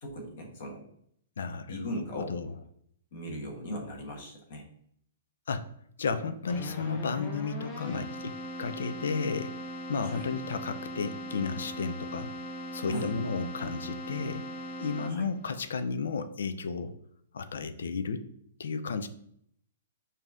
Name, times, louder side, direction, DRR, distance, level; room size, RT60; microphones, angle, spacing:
voice 1, 0.0-0.8 1.7-2.3 3.1-4.6 7.9-8.1 10.0-10.3 12.9-13.1 15.1-15.3, equal, 45° left, 1 dB, 1.3 m, -38 dB
voice 2, 1.4-1.9 2.1-2.5 5.5-5.7 6.0-8.3 8.6-9.5 9.9-12.3 12.7-14.4 14.8-16.9 17.3-18.3 18.6-19.1, left 5 dB, 80° left, 10 dB, 0.4 m, -33 dB
Keyboard (musical), 6.5-15.5, equal, 20° left, 0.6 m, -40 dB
5.2 x 2.7 x 3.6 m, 0.68 s
hypercardioid pair, 170°, 0 cm